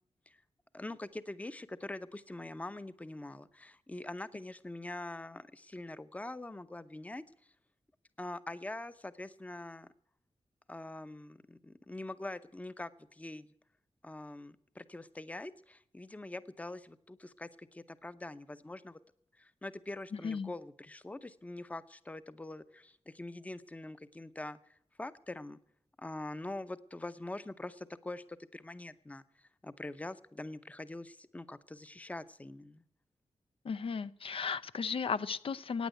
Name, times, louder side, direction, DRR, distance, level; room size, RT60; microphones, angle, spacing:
voice 1, 0.7-7.2 8.2-9.9 10.7-13.5 14.0-19.0 19.4-25.6 26.0-32.8, left 2 dB, 15° left, 14 dB, 0.7 m, -44 dB
voice 2, 33.6-35.9, left 5 dB, 60° left, 15 dB, 0.5 m, -35 dB
15.5 x 9.6 x 8.0 m, 0.71 s
wide cardioid pair, 175°, 11 cm